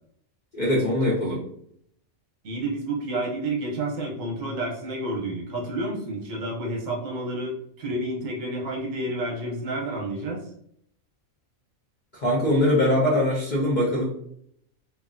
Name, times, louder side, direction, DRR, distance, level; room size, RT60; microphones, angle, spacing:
voice 1, 0.5-1.4 12.1-14.0, left 1 dB, 50° left, -4 dB, 0.5 m, -22 dB
voice 2, 2.4-10.4, right 1 dB, 70° right, -1 dB, 1.1 m, -30 dB
2.9 x 2.4 x 2.4 m, 0.68 s
omnidirectional pair, 1.5 m